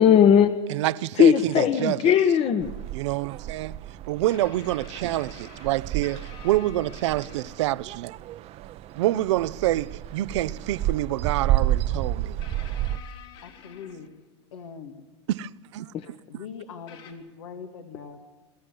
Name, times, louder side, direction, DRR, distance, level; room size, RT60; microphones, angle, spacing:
voice 1, 0.0-0.6 1.2-2.7 15.9-16.1, left 8 dB, 40° left, 1.2 m, -18 dB
voice 2, 0.7-2.1 2.9-3.8 4.1-8.1 8.9-12.4 15.3-15.9, right 15 dB, 75° right, 0.7 m, -27 dB
sound 1, 2.6-13.0, right 13 dB, 45° right, 0.8 m, -31 dB
sound 2, 2.8-2.9 4.3-7.8 9.1-9.2 11.0-11.1 12.4-14.5 15.9-16.0 16.9-17.1, left 9 dB, 65° left, 4.3 m, -48 dB
voice 3, 13.4-14.1 14.5-15.0 16.3-18.3, left 6 dB, 90° left, 2.3 m, -41 dB
23.5 x 13.5 x 9.5 m
supercardioid pair, 115°, 15 cm